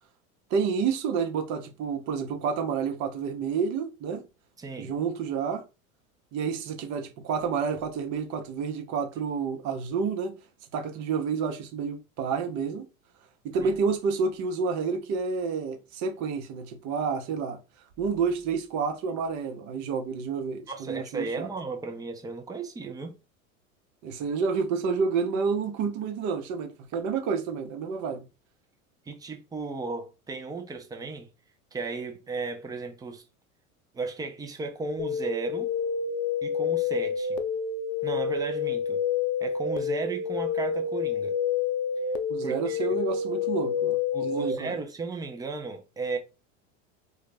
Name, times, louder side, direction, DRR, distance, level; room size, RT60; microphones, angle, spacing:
voice 1, 0.5-4.2 4.8-5.6 6.3-10.3 10.7-12.9 13.4-17.6 18.0-21.5 24.0-28.2 42.3-44.7, right 5 dB, 45° right, 0.7 m, -29 dB
voice 2, 4.6-5.0 13.6-13.7 20.7-23.1 29.1-31.3 31.7-33.2 33.9-35.7 36.4-37.4 38.0-39.0 39.4-41.4 42.4-42.9 44.1-46.2, right 3 dB, 10° right, 0.4 m, -35 dB
sound 1, 35.0-44.5, left 6 dB, 55° left, 0.5 m, -28 dB
2.3 x 2.1 x 3.3 m
hypercardioid pair, 95°, 41 cm